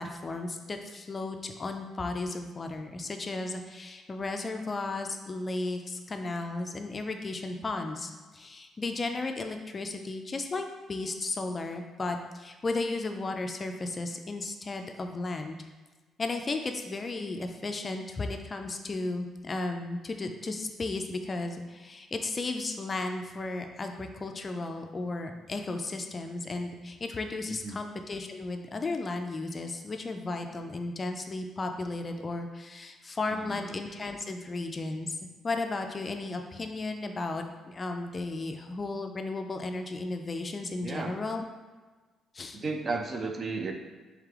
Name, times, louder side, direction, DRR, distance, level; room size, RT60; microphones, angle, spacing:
voice 1, 0.0-15.7 16.2-35.2 35.4-41.4 42.3-42.6, left 3 dB, 30° left, 5 dB, 0.3 m, -34 dB
voice 2, 27.5-27.8 33.3-33.6 40.8-41.1 42.5-43.7, right 3 dB, 35° right, 4 dB, 0.4 m, -34 dB
3.3 x 3.2 x 3.6 m, 1.3 s
cardioid pair, 105°, 0 cm